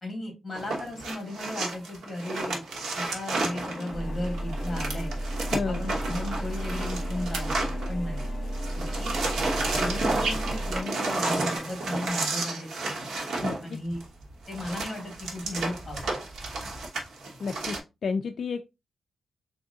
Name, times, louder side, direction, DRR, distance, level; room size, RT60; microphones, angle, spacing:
voice 1, 0.0-2.6 3.0-5.1 5.7-8.2 8.8-9.2 9.7-12.7 13.6-14.0 14.5-16.2, left 1 dB, 20° left, 2.1 m, -35 dB
sound 1, 0.5-8.3 8.5-17.8, right 2 dB, 75° right, 1.2 m, -31 dB
sound 2, 3.3-11.6, left 3 dB, 35° left, 1.4 m, -43 dB
Engine, 3.9-10.8, right 1 dB, 30° right, 1.3 m, -33 dB
voice 2, 5.5-5.9 13.4-13.8 17.4-18.6, left 5 dB, 50° left, 0.3 m, -31 dB
3.7 x 2.8 x 3.6 m
wide cardioid pair, 165°, 0 cm